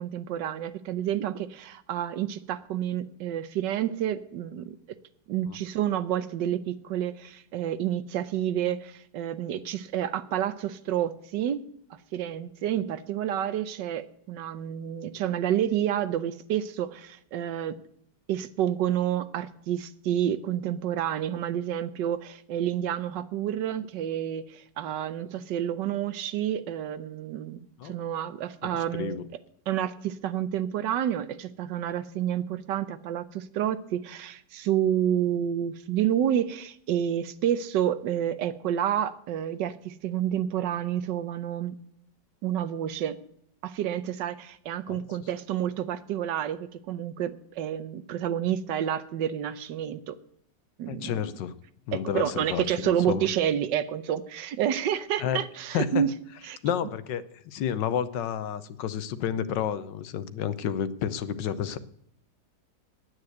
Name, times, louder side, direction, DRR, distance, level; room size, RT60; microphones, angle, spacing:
voice 1, 0.0-4.8 5.3-11.6 11.9-17.8 18.3-29.2 29.7-41.8 42.4-43.2 43.6-50.2 50.8-51.2 51.9-56.1 56.5-56.6, right 10 dB, 80° right, 14 dB, 1.4 m, -29 dB
voice 2, 28.6-29.3 44.9-45.0 50.9-51.5 51.9-53.3 55.2-55.4 55.7-56.0 56.6-61.8, left 8 dB, 85° left, 14 dB, 1.5 m, -30 dB
9.6 x 9.2 x 7.9 m, 0.70 s
omnidirectional pair, 1.9 m